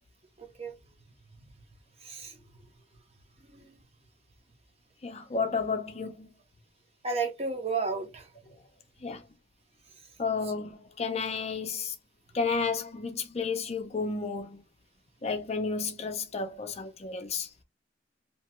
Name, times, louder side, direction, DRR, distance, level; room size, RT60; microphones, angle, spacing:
voice 1, 0.4-0.7 2.0-2.3 3.4-3.8 7.0-8.3, right 4 dB, 35° right, 0.7 m, -33 dB
voice 2, 5.0-6.3 9.0-9.2 10.2-11.9 12.3-14.6 15.2-17.5, left 4 dB, 35° left, 0.5 m, -32 dB
2.9 x 2.2 x 2.9 m
head